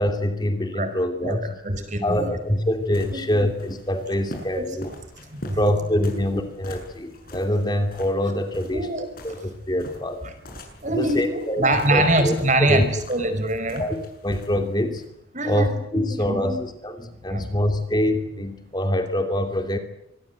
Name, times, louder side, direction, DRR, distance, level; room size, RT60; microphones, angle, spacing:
voice 1, 0.0-1.6 2.0-4.9 5.5-10.2 10.8-11.7 11.9-12.3 12.6-12.9 13.8-15.0 15.4-19.8, left 1 dB, 20° left, 6 dB, 2.7 m, -25 dB
voice 2, 1.6-2.3 3.1-3.5 4.6-4.7 5.3-5.6 6.0-6.1 8.7-9.1 10.8-13.9 15.3-16.6 17.3-17.5, right 1 dB, 40° right, 9 dB, 5.0 m, -24 dB
sound 1, 2.3-15.1, left 1 dB, 50° left, 7.6 m, -43 dB
25.5 x 22.0 x 8.2 m, 0.80 s
head